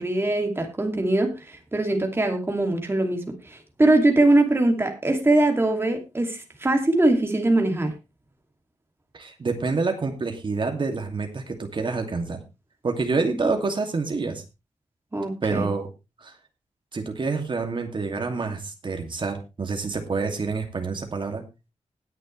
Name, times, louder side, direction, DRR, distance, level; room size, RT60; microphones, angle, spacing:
voice 1, 0.0-7.9 13.4-13.5 15.1-15.7, right 2 dB, 20° right, 3 dB, 2.6 m, -22 dB
voice 2, 9.1-12.4 12.8-14.4 15.4-15.9 16.2-16.3 16.9-21.4, right 4 dB, 40° right, 4 dB, 2.5 m, -27 dB
20.0 x 6.8 x 3.3 m, 0.28 s
wide cardioid pair, 160°, 12 cm